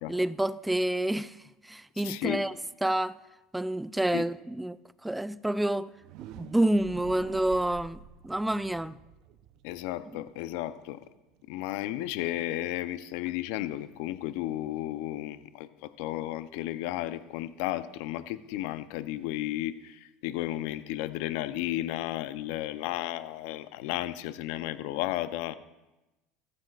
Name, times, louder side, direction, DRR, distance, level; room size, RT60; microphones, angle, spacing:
voice 1, 0.1-1.4 1.6-2.5 2.8-3.2 3.5-4.8 5.0-5.9 6.4-9.0, right 1 dB, 5° right, 0.4 m, -28 dB
voice 2, 2.0-2.5 4.1-4.3 9.6-11.0 11.5-25.6, left 14 dB, 70° left, 0.6 m, -33 dB
sound 1, 5.9-11.8, right 10 dB, 60° right, 0.7 m, -49 dB
14.5 x 14.0 x 2.4 m
hypercardioid pair, 90°, 0 cm